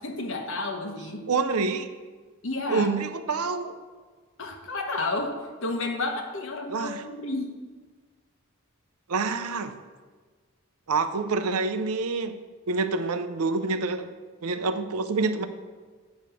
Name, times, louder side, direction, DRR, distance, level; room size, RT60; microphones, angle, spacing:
voice 1, 0.0-1.2 2.4-2.9 4.4-7.6, left 2 dB, 60° left, 4 dB, 1.1 m, -31 dB
voice 2, 1.3-1.9 2.7-3.7 6.7-7.0 9.1-9.7 10.9-12.4 12.7-14.1 14.4-15.5, right 4 dB, 90° right, 8 dB, 0.6 m, -27 dB
8.9 x 5.1 x 6.8 m, 1.5 s
head